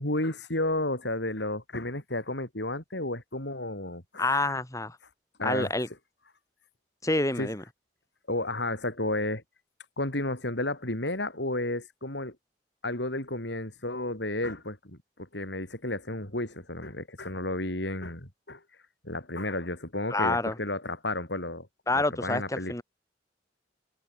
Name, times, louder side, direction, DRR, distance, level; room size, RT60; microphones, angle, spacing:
voice 1, 0.0-4.6 5.4-5.7 7.4-7.5 8.3-9.4 10.0-12.4 12.8-18.6 19.0-21.7 21.9-22.8, left 2 dB, 75° left, 6.4 m, -32 dB
voice 2, 4.2-5.0 5.4-5.9 7.0-7.6 20.1-20.6 21.9-22.8, left 2 dB, 20° left, 3.7 m, -27 dB
head